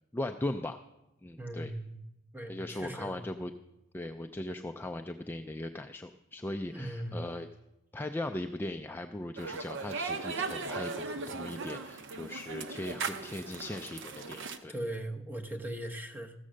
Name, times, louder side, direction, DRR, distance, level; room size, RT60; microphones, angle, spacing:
voice 1, 0.1-0.8 1.2-1.7 2.5-3.5 3.9-7.5 7.9-14.7, left 1 dB, 10° left, 6 dB, 0.3 m, -38 dB
voice 2, 1.4-2.0 2.3-3.1 6.7-7.2 14.7-16.3, right 1 dB, 10° right, 2 dB, 1.0 m, -39 dB
sound 1, 9.4-14.6, right 4 dB, 60° right, 0.8 m, -38 dB
14.5 x 7.5 x 6.4 m, 0.95 s
head